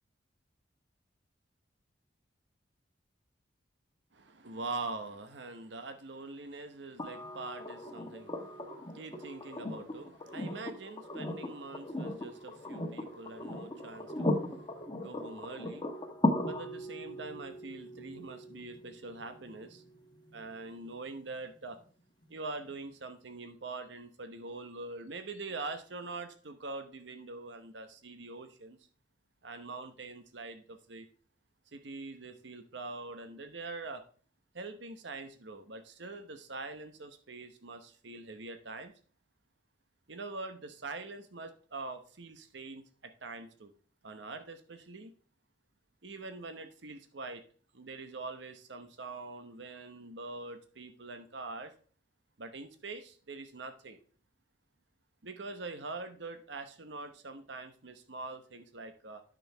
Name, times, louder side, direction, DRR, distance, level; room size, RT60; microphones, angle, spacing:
voice 1, 4.1-16.2 16.4-19.8 20.3-21.8 22.3-28.8 29.4-31.1 31.7-34.0 34.5-38.9 40.1-43.7 44.0-45.1 46.0-47.4 47.7-51.7 52.4-54.0 55.2-59.2, right 3 dB, 70° right, 0.9 m, -44 dB
sound 1, 7.0-20.9 22.7-22.8, left 1 dB, 25° left, 1.2 m, -38 dB
9.8 x 6.2 x 3.4 m
head